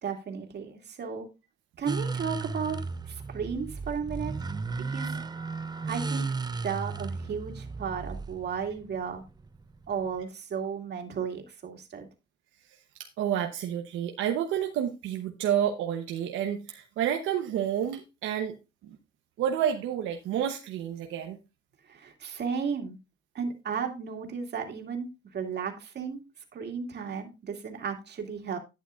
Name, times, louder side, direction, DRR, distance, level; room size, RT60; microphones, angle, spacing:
voice 1, 0.0-1.3 1.8-2.8 3.1-4.3 4.9-5.2 5.9-6.3 6.6-9.2 9.9-12.1 21.9-23.0 23.3-26.2 26.5-28.6, right 6 dB, 60° right, 3 dB, 2.5 m, -34 dB
sound 1, 1.9-10.2, right 4 dB, 20° right, 0.6 m, -35 dB
voice 2, 12.7-18.5 18.8-19.0 19.4-21.4, right 9 dB, 90° right, 4 dB, 1.0 m, -30 dB
11.5 x 8.7 x 2.5 m, 0.26 s
cardioid pair, 90°, 20 cm